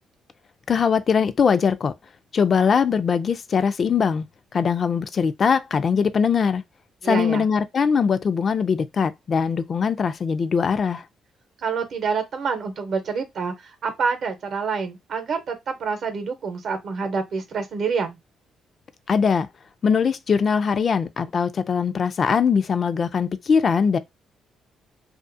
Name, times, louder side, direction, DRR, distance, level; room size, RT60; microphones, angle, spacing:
voice 1, 0.7-1.9 2.3-4.3 4.5-6.6 7.0-11.0 19.1-19.5 19.8-24.0, left 6 dB, 45° left, 0.3 m, -21 dB
voice 2, 7.0-7.5 11.6-18.2, right 5 dB, 60° right, 0.7 m, -27 dB
2.4 x 2.3 x 2.5 m
cardioid pair, 90°, 0 cm